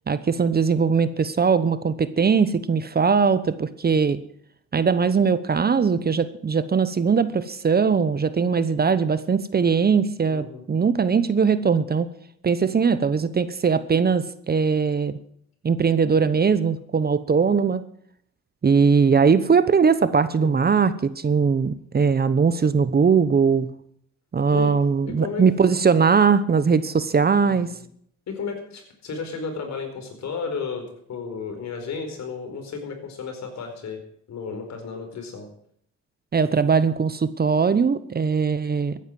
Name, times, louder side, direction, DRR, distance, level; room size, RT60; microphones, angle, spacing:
voice 1, 0.1-4.2 4.7-12.1 12.4-15.2 15.6-17.8 18.6-23.7 24.3-27.7 36.3-39.0, right 5 dB, 30° right, 14 dB, 0.9 m, -20 dB
voice 2, 10.3-10.6 20.4-20.7 24.5-24.7 25.2-25.4 27.4-27.7 28.3-34.0 34.3-35.5, left 5 dB, 65° left, 5 dB, 4.6 m, -33 dB
14.5 x 10.0 x 7.7 m, 0.67 s
cardioid pair, 90°, 30 cm